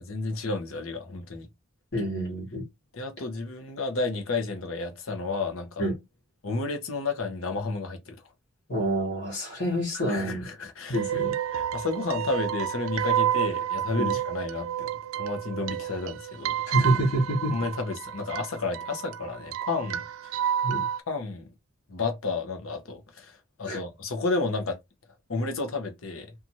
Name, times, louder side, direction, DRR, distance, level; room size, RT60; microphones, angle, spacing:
voice 1, 0.1-1.5 2.9-5.8 6.4-8.2 9.9-11.0 11.5-14.9 15.1-16.6 17.5-20.3 21.1-21.5 21.9-24.8 25.3-26.3, left 3 dB, 80° left, 0.8 m, -31 dB
voice 2, 1.9-2.7 5.8-5.9 8.7-10.4 10.9-11.3 14.0-14.1 16.7-17.5 20.6-20.9 23.6-23.8, right 1 dB, 60° left, 1.3 m, -27 dB
sound 1, 10.9-21.0, right 10 dB, 85° right, 0.4 m, -30 dB
2.7 x 2.4 x 2.8 m
head